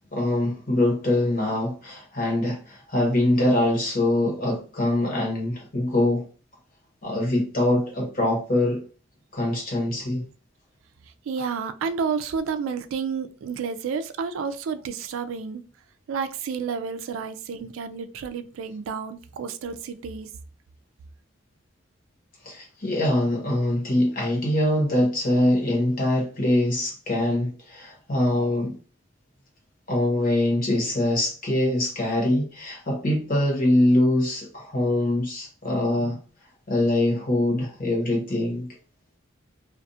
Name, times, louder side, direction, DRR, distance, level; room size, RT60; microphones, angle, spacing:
voice 1, 0.1-6.2 7.0-8.8 9.3-10.2 22.4-28.8 29.9-36.2 36.7-38.7, left 1 dB, 45° left, 1.1 m, -23 dB
voice 2, 11.3-15.6 16.1-20.3, right 6 dB, 90° right, 0.3 m, -30 dB
2.5 x 2.4 x 2.6 m
head